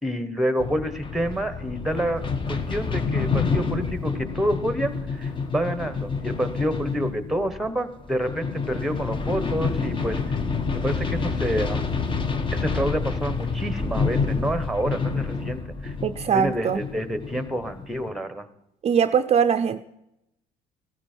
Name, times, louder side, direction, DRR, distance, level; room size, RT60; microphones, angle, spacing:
voice 1, 0.0-2.2 2.5-10.2 10.7-11.9 12.5-15.9 16.3-18.5, equal, ahead, 11 dB, 1.2 m, -28 dB
sound 1, 0.6-18.1, left 4 dB, 30° left, 1.2 m, -28 dB
voice 2, 16.0-16.8 18.8-19.8, right 7 dB, 40° right, 9 dB, 0.6 m, -21 dB
16.0 x 13.0 x 4.5 m, 0.83 s
cardioid pair, 110°, 17 cm